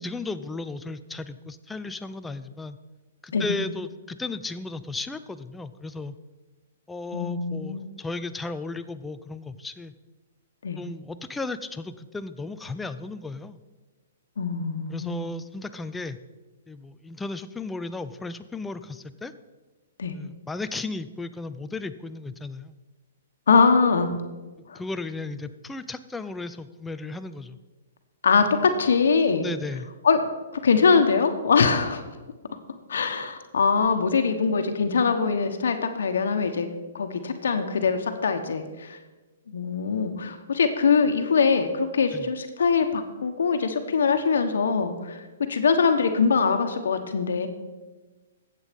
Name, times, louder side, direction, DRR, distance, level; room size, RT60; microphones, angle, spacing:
voice 1, 0.0-2.8 3.2-6.2 6.9-9.9 10.8-13.6 14.9-16.2 16.7-19.3 20.2-22.8 24.7-27.6 29.4-29.9 42.1-42.3, left 3 dB, 5° left, 11 dB, 0.5 m, -35 dB
voice 2, 7.1-7.8 10.6-10.8 14.4-15.3 20.0-20.1 23.5-24.1 24.7-24.8 28.2-29.5 30.0-30.2 30.5-32.0 32.9-36.7 36.9-39.0 39.5-45.2 45.5-47.5, left 5 dB, 80° left, 6 dB, 1.2 m, -22 dB
13.5 x 8.2 x 5.3 m, 1.2 s
hypercardioid pair, 155°, 0 cm